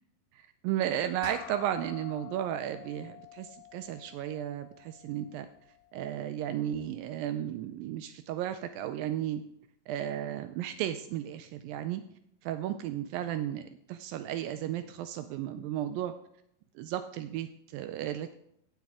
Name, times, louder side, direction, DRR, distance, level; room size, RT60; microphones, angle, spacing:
voice 1, 0.3-5.5 5.9-9.4 9.9-12.0 12.4-16.1 16.8-18.3, right 11 dB, 80° right, 10 dB, 2.1 m, -34 dB
sound 1, 1.2-6.0, left 13 dB, 80° left, 2.0 m, -49 dB
16.0 x 7.5 x 3.6 m, 0.74 s
omnidirectional pair, 4.4 m